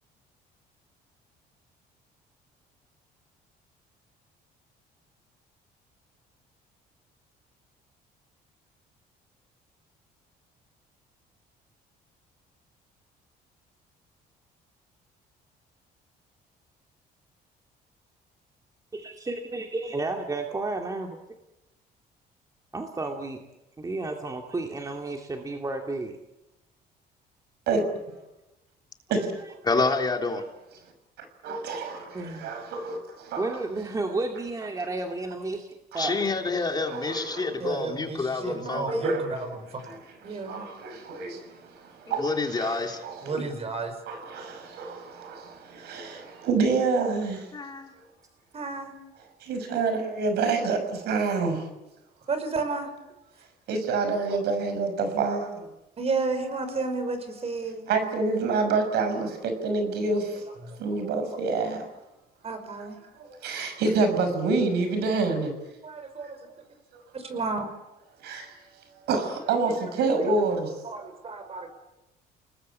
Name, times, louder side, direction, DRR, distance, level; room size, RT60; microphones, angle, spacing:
voice 1, 18.9-21.2 22.7-23.4 23.8-26.2 29.2-29.4 32.1-32.5 33.4-36.2, right 2 dB, 20° right, 2.4 m, -32 dB
voice 2, 29.6-30.4 36.0-38.9 42.2-43.0 47.5-47.9, left 3 dB, 25° left, 3.4 m, -28 dB
voice 3, 31.4-33.5 35.9-36.2 36.9-37.6 38.9-39.3 39.8-40.0 40.2-43.4 44.1-47.5 49.4-51.6 53.7-55.7 57.9-60.5 60.8-61.8 63.2-65.5 66.9-67.1 68.2-68.6 69.1-70.7, right 3 dB, 75° right, 6.0 m, -27 dB
voice 4, 37.6-39.8 40.2-40.7 43.2-44.0 48.5-49.0 51.4-51.6 52.3-52.9 56.0-57.9 60.6-61.1 62.4-63.0 65.8-66.6 67.1-67.7 69.5-69.6 70.8-71.7, right 4 dB, 35° right, 5.7 m, -32 dB
29.5 x 20.0 x 8.5 m
cardioid pair, 110°, 17 cm